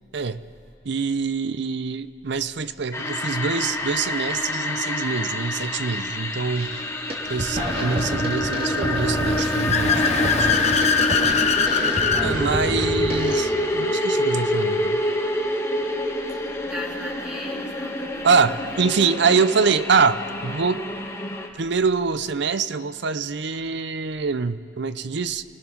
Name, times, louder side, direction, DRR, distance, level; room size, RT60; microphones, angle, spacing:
voice 1, 0.8-6.8 7.3-10.5 11.8-11.9 12.2-15.0 18.2-20.9 21.6-25.4, right 5 dB, 65° right, 13 dB, 0.6 m, -24 dB
sound 1, 2.9-21.5, left 1 dB, 15° left, 1.4 m, -27 dB
sound 2, 6.5-6.8 7.1-13.4, equal, 30° right, 2.4 m, -29 dB
Car / Accelerating revving vroom, 9.1-12.3, left 5 dB, 35° left, 1.0 m, -22 dB
voice 2, 11.5-12.0 16.3-18.9 19.3-19.8, left 1 dB, 5° right, -3 dB, 3.1 m, -39 dB
29.5 x 18.5 x 6.0 m, 2.6 s
head